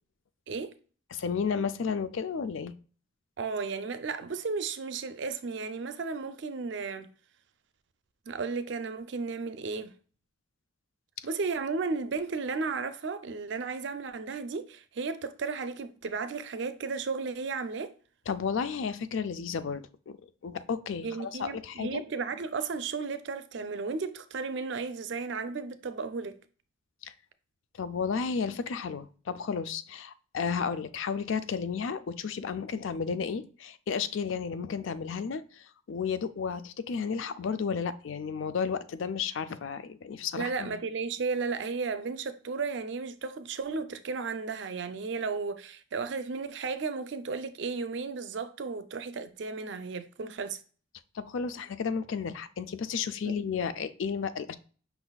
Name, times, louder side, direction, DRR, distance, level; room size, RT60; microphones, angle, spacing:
voice 1, 1.1-2.7 18.3-20.2 20.4-22.0 27.0-27.1 27.7-40.8 51.1-54.5, left 6 dB, 70° left, 0.4 m, -33 dB
voice 2, 3.4-7.1 8.3-9.9 11.2-17.9 21.0-26.4 40.4-50.6 53.2-53.3, right 4 dB, 60° right, 0.4 m, -34 dB
5.7 x 4.0 x 2.3 m
head